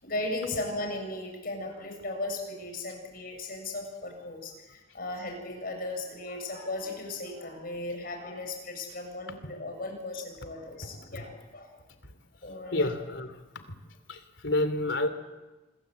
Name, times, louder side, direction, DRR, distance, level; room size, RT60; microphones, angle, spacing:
voice 1, 0.0-11.8 12.4-12.9, left 2 dB, 50° left, 2 dB, 7.9 m, -36 dB
voice 2, 12.7-13.6 14.1-15.1, left 1 dB, 80° left, 9 dB, 3.0 m, -29 dB
27.0 x 21.5 x 8.3 m, 1.1 s
head